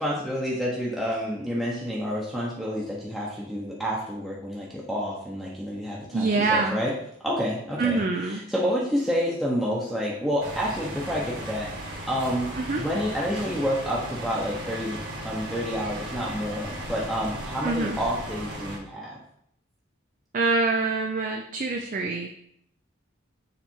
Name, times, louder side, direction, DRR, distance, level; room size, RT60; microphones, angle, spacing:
voice 1, 0.0-6.9 7.2-11.7 12.1-12.5 12.8-19.2, equal, ahead, -5 dB, 0.9 m, -29 dB
voice 2, 6.1-6.8 7.8-8.4 12.6-12.8 17.6-18.0 20.3-22.3, right 3 dB, 40° right, 2 dB, 0.4 m, -25 dB
sound 1, 10.4-18.8, right 1 dB, 60° right, 1.7 m, -36 dB
7.1 x 3.3 x 4.5 m, 0.70 s
head